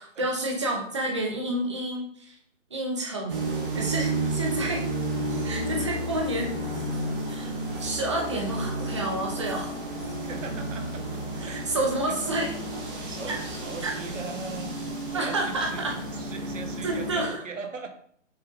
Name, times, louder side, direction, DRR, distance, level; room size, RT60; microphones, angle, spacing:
voice 1, 0.0-2.4 2.7-3.4 3.7-4.8 5.4-6.5 7.3-7.5 7.8-9.8 11.4-12.5 13.8-13.9 15.1-15.9 16.8-17.4, right 1 dB, 25° right, 0 dB, 0.7 m, -29 dB
sound 1, 3.3-17.3, right 1 dB, 45° right, 1.3 m, -32 dB
voice 2, 10.2-11.7 12.1-12.2 13.1-14.7 15.1-17.9, right 4 dB, 75° right, 6 dB, 1.0 m, -40 dB
6.4 x 3.3 x 2.4 m, 0.63 s
hypercardioid pair, 160°, 39 cm